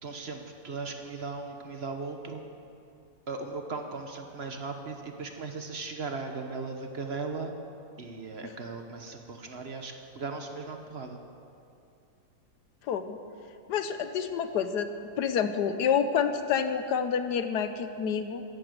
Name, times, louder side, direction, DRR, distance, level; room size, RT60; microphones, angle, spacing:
voice 1, 0.0-2.5 3.3-7.5 8.0-11.2, right 4 dB, 45° right, 5 dB, 1.1 m, -37 dB
voice 2, 12.9-13.2 13.7-14.9 15.2-18.4, left 7 dB, 90° left, 9 dB, 1.4 m, -28 dB
13.0 x 11.5 x 7.7 m, 2.6 s
omnidirectional pair, 1.7 m